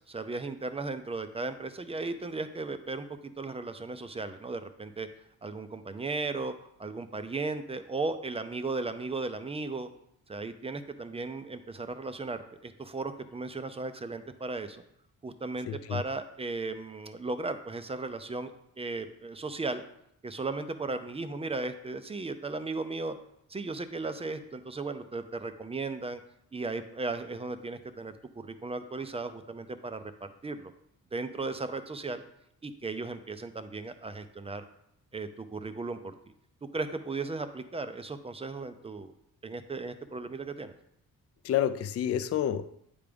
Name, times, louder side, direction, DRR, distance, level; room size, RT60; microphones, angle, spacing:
voice 1, 0.0-5.1 5.4-6.5 6.8-9.9 10.3-14.8 15.2-18.5 18.8-19.8 20.2-23.1 23.5-26.2 26.5-30.7 31.1-32.2 32.6-34.6 35.1-36.1 36.7-39.1 39.4-40.7, right 3 dB, 20° right, 10 dB, 0.4 m, -36 dB
voice 2, 15.7-16.0 41.4-42.7, left 10 dB, 45° left, 12 dB, 0.4 m, -29 dB
9.5 x 3.5 x 5.1 m, 0.75 s
wide cardioid pair, 145°, 33 cm